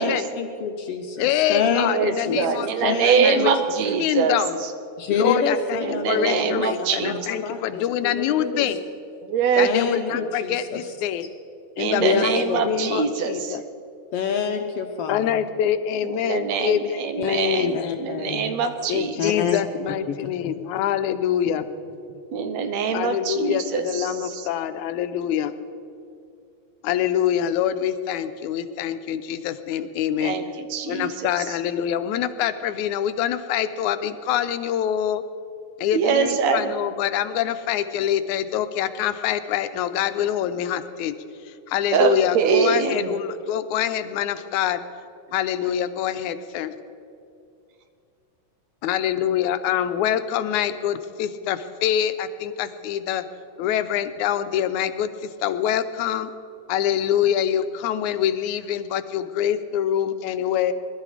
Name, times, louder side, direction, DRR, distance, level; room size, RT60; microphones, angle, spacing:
voice 1, 0.0-2.4 2.8-3.5 5.0-8.7 9.6-10.8 12.0-12.7 14.1-15.4 17.2-18.5 19.2-19.6 20.1-20.5 21.5-21.6, left 6 dB, 70° left, 5 dB, 1.6 m, -27 dB
voice 2, 1.2-3.5 4.0-4.6 5.1-8.8 9.6-11.3 11.8-13.6 15.1-18.0 18.9-21.7 22.9-25.5 26.8-30.4 30.9-35.2 35.8-41.2 41.5-44.8 45.3-46.8 48.8-53.2 53.6-56.3 56.7-60.7, left 10 dB, 85° left, 11 dB, 2.1 m, -25 dB
voice 3, 1.9-4.7 5.8-7.3 9.2-9.7 11.8-13.6 16.1-19.3 22.3-24.5 30.2-30.4 30.7-31.5 35.9-36.7 41.9-43.1, right 6 dB, 70° right, 8 dB, 2.0 m, -24 dB
21.0 x 12.0 x 4.9 m, 2.5 s
omnidirectional pair, 3.4 m